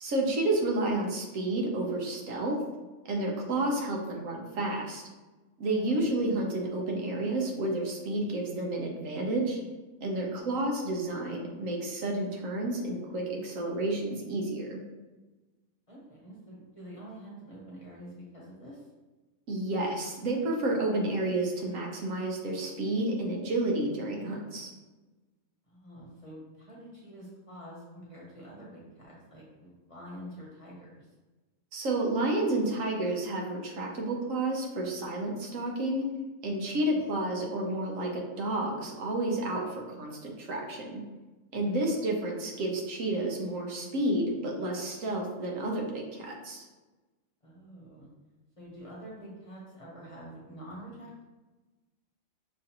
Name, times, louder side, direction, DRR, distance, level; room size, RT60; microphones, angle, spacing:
voice 1, 0.0-2.6 3.0-5.0 5.6-9.6 10.0-14.8 19.5-24.7 31.7-36.1 36.4-41.0 41.5-46.6, right 2 dB, 70° right, 0 dB, 1.1 m, -30 dB
voice 2, 5.7-6.1 10.3-10.4 15.9-18.8 25.7-31.1 36.6-37.1 41.6-41.8 47.4-48.1 48.6-51.2, equal, 25° left, -6 dB, 0.9 m, -47 dB
6.1 x 2.5 x 2.8 m, 1.2 s
omnidirectional pair, 1.5 m